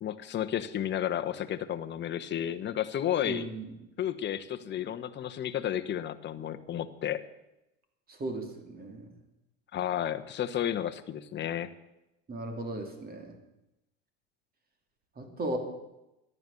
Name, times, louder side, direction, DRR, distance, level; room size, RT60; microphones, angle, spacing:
voice 1, 0.0-3.5 4.0-7.2 9.7-11.7, left 10 dB, 35° left, 9 dB, 1.1 m, -32 dB
voice 2, 3.2-3.7 8.1-9.1 12.3-13.4 15.2-15.6, right 2 dB, 30° right, 5 dB, 2.8 m, -36 dB
14.0 x 11.0 x 7.0 m, 0.92 s
hypercardioid pair, 100°, 32 cm